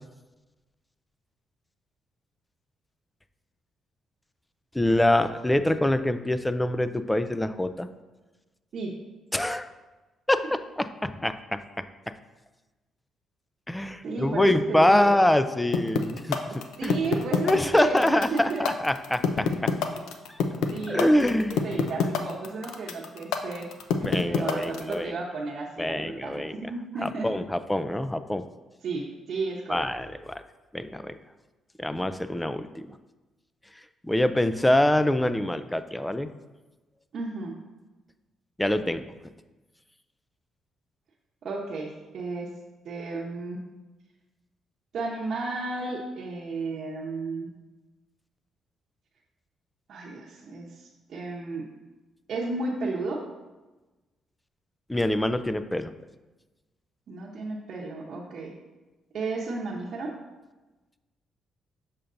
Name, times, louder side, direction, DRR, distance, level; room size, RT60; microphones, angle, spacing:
voice 1, 4.7-7.9 9.3-9.7 10.3-12.1 13.7-16.4 16.8-17.0 17.4-19.7 20.3-20.4 20.9-21.7 24.0-25.2 25.8-26.6 27.0-28.5 29.7-30.4 30.7-31.2 31.8-33.0 34.0-36.3 38.6-39.1 54.9-55.9, left 1 dB, 10° left, 11 dB, 0.3 m, -25 dB
voice 2, 14.0-15.1 16.8-18.0 18.3-18.6 20.7-21.3 21.6-23.7 24.0-27.3 28.8-29.9 37.1-37.5 41.4-42.5 42.8-43.6 44.9-47.5 49.9-51.7 52.3-53.2 57.1-58.5 59.1-60.1, right 3 dB, 60° right, -5 dB, 0.8 m, -33 dB
sound 1, 15.7-24.9, left 7 dB, 85° left, 0.5 m, -26 dB
6.6 x 5.7 x 2.6 m, 1.2 s
cardioid pair, 90°, 0 cm